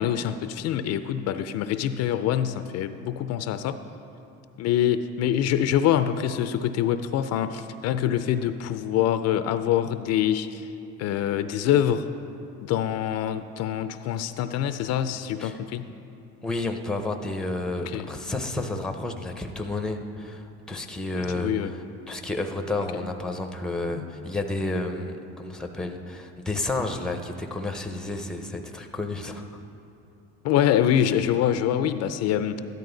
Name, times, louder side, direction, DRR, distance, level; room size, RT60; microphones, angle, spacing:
voice 1, 0.0-3.8 4.6-10.7 11.0-12.1 12.6-15.9 17.9-18.1 21.2-21.7 23.9-24.1 30.4-32.6, left 10 dB, 55° left, 10 dB, 0.5 m, -25 dB
voice 2, 16.4-21.5 22.1-29.4, left 2 dB, ahead, 5 dB, 0.6 m, -31 dB
13.0 x 10.5 x 3.9 m, 2.8 s
cardioid pair, 125°, 30 cm